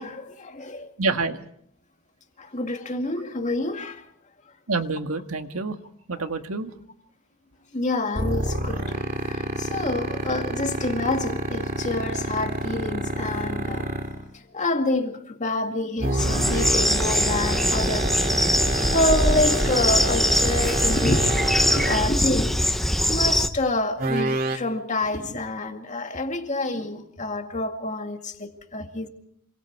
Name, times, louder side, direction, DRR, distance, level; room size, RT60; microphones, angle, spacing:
voice 1, 0.0-0.9 2.4-4.0 7.7-8.8 9.2-13.9 14.5-18.2 18.4-22.6 22.8-29.1, left 2 dB, 35° left, 2.2 m, -28 dB
voice 2, 1.0-1.4 4.7-5.8 6.1-6.7, right 3 dB, 85° right, 1.8 m, -27 dB
sound 1, 8.1-14.2 16.0-22.3 24.0-24.6, right 2 dB, 45° right, 2.5 m, -27 dB
sound 2, 16.2-23.5, equal, ahead, 1.0 m, -22 dB
27.0 x 25.5 x 4.7 m
head